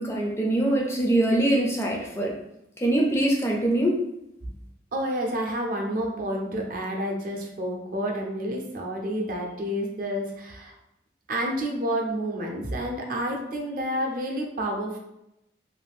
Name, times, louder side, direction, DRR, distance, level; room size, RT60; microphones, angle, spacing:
voice 1, 0.0-2.4 2.8-4.0, right 1 dB, 15° left, -1 dB, 0.4 m, -23 dB
voice 2, 4.9-10.7 11.3-15.0, equal, 50° right, 1 dB, 0.5 m, -29 dB
2.6 x 2.3 x 3.4 m, 0.85 s
head